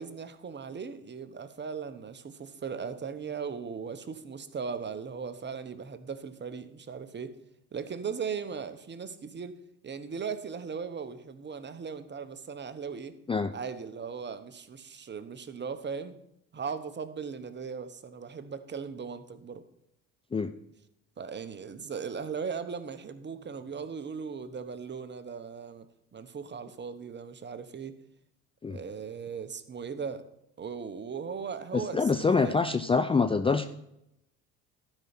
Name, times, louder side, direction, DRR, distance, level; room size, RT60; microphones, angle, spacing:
voice 1, 0.0-7.3 7.7-9.6 9.8-13.2 13.5-16.1 16.5-19.6 21.2-25.9 26.1-28.0 28.7-30.2 30.6-32.6, right 6 dB, 30° right, 11 dB, 1.1 m, -38 dB
voice 2, 31.7-33.6, left 4 dB, 15° left, 10 dB, 0.5 m, -25 dB
12.0 x 5.5 x 5.9 m, 0.81 s
hypercardioid pair, 75°, 37 cm